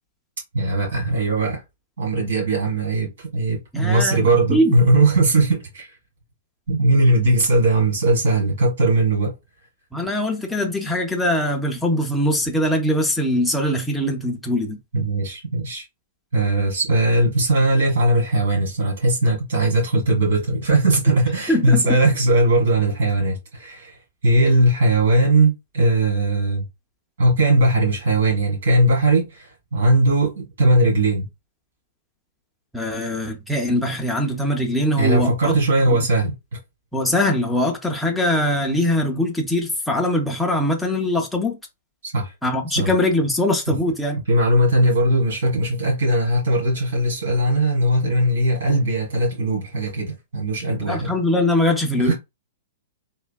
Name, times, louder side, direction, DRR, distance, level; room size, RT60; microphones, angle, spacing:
voice 1, 0.5-1.6 2.0-5.9 6.7-9.3 14.9-15.8 16.3-23.9 24.2-26.7 27.2-31.3 35.0-36.4 42.0-42.3 42.7-42.9 43.7-43.8 44.3-51.1 52.0-52.1, right 1 dB, 80° right, 1.5 m, -19 dB
voice 2, 3.7-4.7 9.9-14.8 21.5-22.0 32.7-35.5 35.9-36.0 36.9-41.6 42.4-44.2 50.8-52.1, left 1 dB, ahead, 0.5 m, -22 dB
3.3 x 2.1 x 2.2 m
hypercardioid pair, 155°, 0 cm